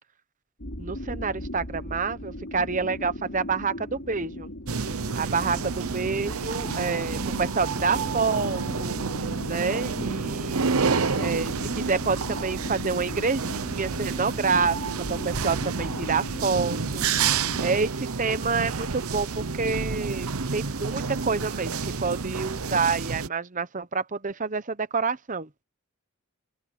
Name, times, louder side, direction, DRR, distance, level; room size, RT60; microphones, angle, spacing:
sound 1, 0.6-17.6, left 1 dB, 55° left, 4.7 m, -39 dB
voice 1, 0.8-4.5 5.2-9.0 9.5-14.8 15.1-25.5, right 4 dB, 35° right, 0.9 m, -28 dB
sound 2, 4.7-23.3, right 5 dB, 75° right, 0.9 m, -29 dB
open air
head